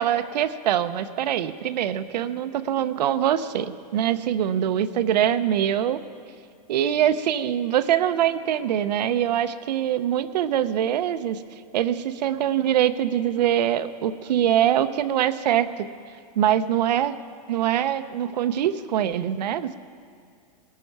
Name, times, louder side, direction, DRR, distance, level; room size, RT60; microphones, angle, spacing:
voice 1, 0.0-6.0 6.7-11.4 11.7-15.9 16.4-17.2 17.5-19.8, right 10 dB, 80° right, 10 dB, 0.7 m, -23 dB
20.0 x 13.0 x 4.6 m, 2.2 s
supercardioid pair, 165°, 21 cm